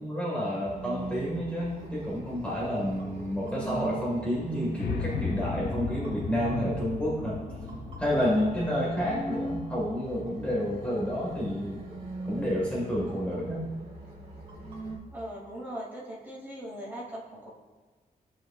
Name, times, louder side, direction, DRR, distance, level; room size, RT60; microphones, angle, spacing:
voice 1, 0.0-7.4 8.0-11.8 12.3-13.6, equal, 10° left, -6 dB, 1.6 m, -30 dB
sound 1, 0.7-15.0, right 2 dB, 40° right, 2.2 m, -40 dB
sound 2, 4.8-10.9, left 6 dB, 90° left, 0.6 m, -37 dB
voice 2, 8.4-8.8 15.1-17.5, equal, 15° right, -6 dB, 2.3 m, -40 dB
15.0 x 5.9 x 2.4 m, 1.4 s
wide cardioid pair, 170°, 15 cm